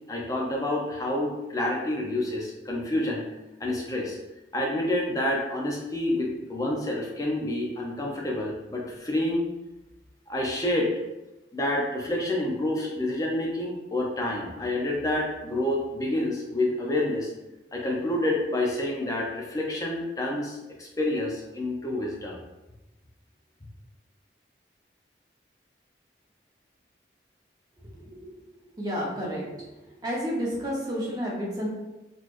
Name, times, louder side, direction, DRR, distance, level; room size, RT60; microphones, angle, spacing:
voice 1, 0.1-3.2 3.6-4.2 4.5-9.5 10.3-10.9 11.5-17.3 17.7-22.4, left 1 dB, 20° left, -2 dB, 0.6 m, -28 dB
voice 2, 27.9-28.3 28.8-29.6 30.0-31.7, equal, 20° right, -5 dB, 0.9 m, -31 dB
4.0 x 3.0 x 2.6 m, 1.0 s
head